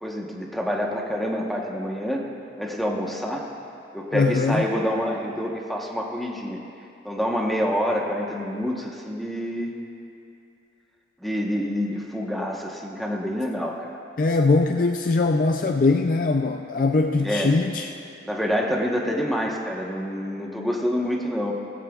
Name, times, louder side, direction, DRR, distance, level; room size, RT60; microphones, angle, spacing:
voice 1, 0.0-2.2 2.6-3.4 3.9-6.6 7.0-9.7 11.2-14.0 17.2-17.6 18.2-21.5, equal, ahead, -1 dB, 1.1 m, -27 dB
voice 2, 4.1-4.6 14.2-17.9, left 3 dB, 50° left, 4 dB, 0.3 m, -21 dB
17.0 x 15.5 x 2.4 m, 2.6 s
head